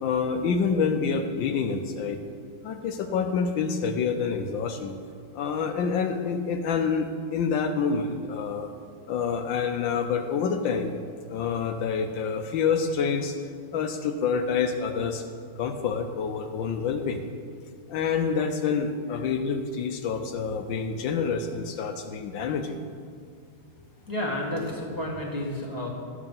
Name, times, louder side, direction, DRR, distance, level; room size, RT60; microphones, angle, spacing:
voice 1, 0.0-2.2 2.6-4.9 5.3-8.7 9.1-11.0 11.3-13.4 13.7-15.2 15.6-17.2 17.9-22.8, left 5 dB, 75° left, 6 dB, 1.3 m, -27 dB
voice 2, 24.1-25.9, left 1 dB, 10° right, -4 dB, 1.4 m, -31 dB
12.5 x 7.3 x 5.5 m, 2.1 s
omnidirectional pair, 2.2 m